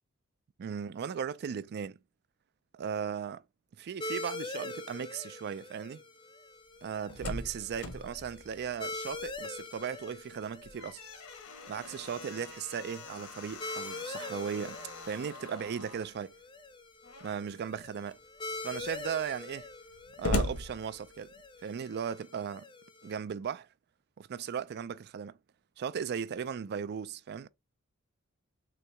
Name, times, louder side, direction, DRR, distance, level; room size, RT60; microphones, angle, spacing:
voice 1, 0.6-2.0 2.7-3.4 3.8-6.0 6.8-11.0 11.7-16.3 17.2-18.2 18.6-19.7 20.2-21.3 21.6-22.7 23.0-23.7 24.2-25.4 25.8-27.5, right 7 dB, 50° right, 0.3 m, -37 dB
sound 1, 4.0-23.1, left 2 dB, 20° left, 0.6 m, -44 dB
Slam, 6.8-9.6 9.9-10.0 10.5-16.1 17.0-17.6 18.1-18.2 18.4-21.5, left 1 dB, 75° left, 1.1 m, -40 dB
3.9 x 2.7 x 4.4 m
head